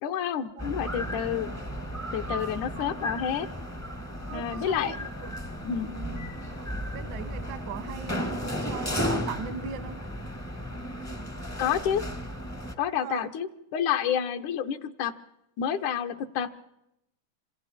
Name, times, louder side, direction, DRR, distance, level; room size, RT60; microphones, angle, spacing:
voice 1, 0.0-1.5 2.1-3.5 4.3-5.0 5.6-5.9 11.6-12.0 12.8-15.1 15.6-16.5, left 9 dB, 80° left, 2.5 m, -29 dB
sound 1, 0.6-12.7, equal, 25° left, 0.3 m, -34 dB
voice 2, 4.3-5.3 5.6-6.3 6.6-10.0 13.0-13.3, right 7 dB, 75° right, 1.0 m, -40 dB
27.0 x 25.5 x 4.3 m
omnidirectional pair, 3.4 m